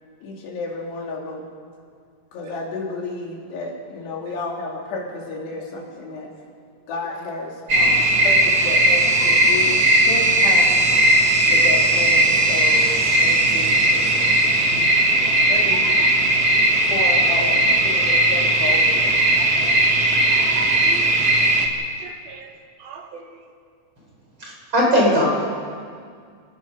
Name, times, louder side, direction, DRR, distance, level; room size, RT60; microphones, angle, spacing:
voice 1, 0.2-1.5 2.3-6.3 6.9-10.9 11.5-12.9 13.2-14.9 15.5-16.3 16.9-19.2 19.6-20.0, left 3 dB, 90° left, -1 dB, 4.9 m, -32 dB
sound 1, 7.7-21.7, right 1 dB, 45° right, 1.3 m, -17 dB
voice 2, 19.4-19.7 20.8-21.2 22.0-23.4, right 7 dB, 70° right, 4 dB, 3.2 m, -41 dB
voice 3, 24.4-25.3, equal, 30° right, -2 dB, 5.4 m, -18 dB
29.0 x 18.0 x 5.5 m, 2.1 s
omnidirectional pair, 4.6 m